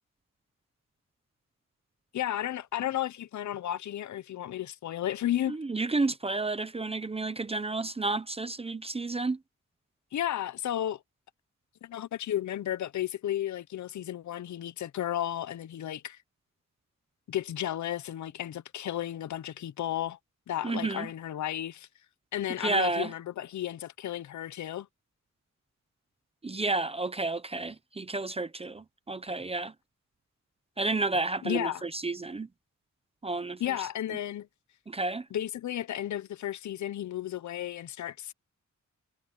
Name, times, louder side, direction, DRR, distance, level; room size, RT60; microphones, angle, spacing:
voice 1, 2.1-5.6 10.1-11.0 11.8-16.2 17.3-20.2 20.5-21.9 22.3-24.9 31.4-31.8 33.6-34.5 35.3-38.3, left 12 dB, 70° left, 0.6 m, -33 dB
voice 2, 5.5-9.4 20.6-21.1 22.6-23.1 26.4-29.7 30.8-32.5 33.2-33.6 34.9-35.2, right 3 dB, 20° right, 0.6 m, -31 dB
wide cardioid pair, 175°, 30 cm